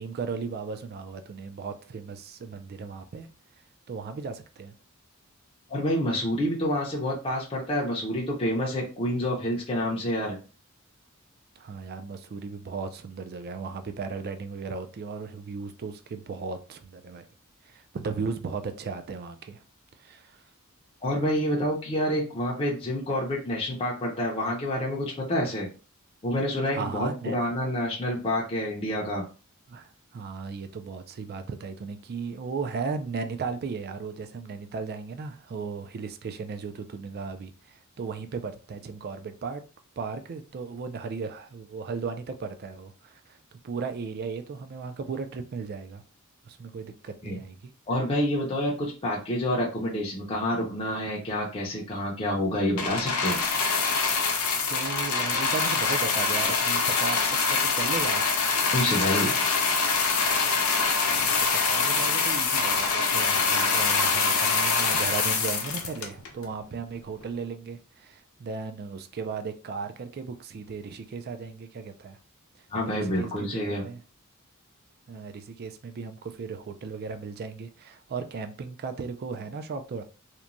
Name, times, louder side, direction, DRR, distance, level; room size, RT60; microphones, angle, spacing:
voice 1, 0.0-3.3 3.9-4.7 11.6-17.3 17.6-19.6 20.0-20.4 26.7-27.4 29.7-39.6 40.0-46.0 46.4-47.7 54.7-57.2 57.5-58.4 61.1-61.4 61.6-72.2 72.6-74.0 75.1-80.0, right 5 dB, 45° right, 0.4 m, -36 dB
voice 2, 5.7-10.4 21.0-25.7 26.2-29.2 47.2-47.4 47.9-53.4 58.7-59.3 72.7-73.8, left 1 dB, 25° left, 0.5 m, -28 dB
sound 1, 52.8-66.4 67.2-67.3, left 4 dB, 75° left, 0.7 m, -24 dB
2.9 x 2.2 x 2.5 m
head